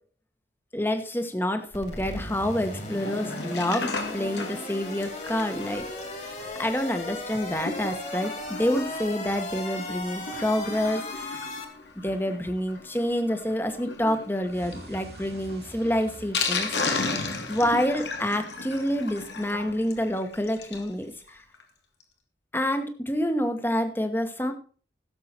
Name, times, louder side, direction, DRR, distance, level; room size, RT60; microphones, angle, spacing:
voice 1, 0.7-5.8 6.2-11.3 12.0-17.1 17.5-21.4 22.5-24.5, left 1 dB, 10° left, 7 dB, 1.2 m, -28 dB
sound 1, 1.7-11.6, left 2 dB, 40° left, 2.5 m, -36 dB
Sink (filling or washing), 2.9-20.9 21.3-21.4 21.5-21.6 22.0-22.1, left 3 dB, 90° left, 2.2 m, -36 dB
sound 2, 14.4-17.6, right 1 dB, 70° right, 1.7 m, -47 dB
16.5 x 7.4 x 4.4 m, 0.40 s
head